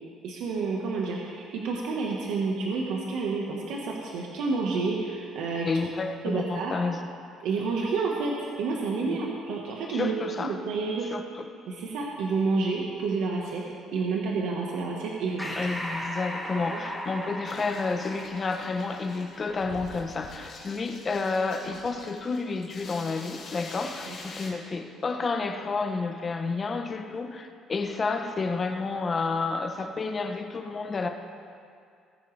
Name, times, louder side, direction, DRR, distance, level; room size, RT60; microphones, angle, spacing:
voice 1, 0.2-5.7 6.2-6.7 7.4-10.1 10.4-11.1 11.7-13.6 13.9-15.7 16.5-16.8 24.1-24.2, right 4 dB, 70° right, -2 dB, 1.3 m, -29 dB
voice 2, 5.6-7.0 9.1-9.2 9.9-10.5 11.0-11.5 15.6-31.1, left 4 dB, 25° left, 6 dB, 0.8 m, -30 dB
Breathing, 15.4-20.3, equal, ahead, 1.1 m, -37 dB
sound 1, 17.5-24.5, left 3 dB, 45° left, 2.5 m, -45 dB
19.0 x 9.1 x 3.3 m, 2.3 s
cardioid pair, 160°, 0 cm